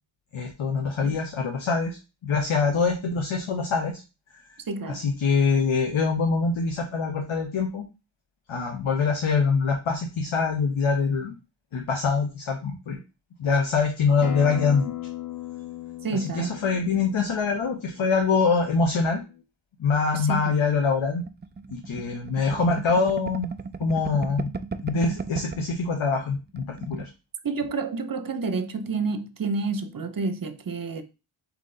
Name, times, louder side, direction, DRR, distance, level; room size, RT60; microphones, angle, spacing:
voice 1, 0.3-4.0 4.9-7.8 8.5-11.3 11.7-13.0 13.4-15.0 16.1-19.2 19.8-21.2 21.7-23.5 23.8-24.5 24.8-27.1, left 4 dB, 80° left, 0.9 m, -24 dB
voice 2, 4.7-5.0 16.0-16.5 20.1-20.6 27.4-31.0, right 4 dB, 45° right, 0.7 m, -29 dB
Acoustic guitar, 14.2-19.4, left 11 dB, 40° left, 0.8 m, -38 dB
sound 1, 21.3-25.8 26.1-26.2 26.5-27.1, right 4 dB, 25° right, 0.3 m, -35 dB
3.8 x 3.0 x 3.8 m
cardioid pair, 50°, 48 cm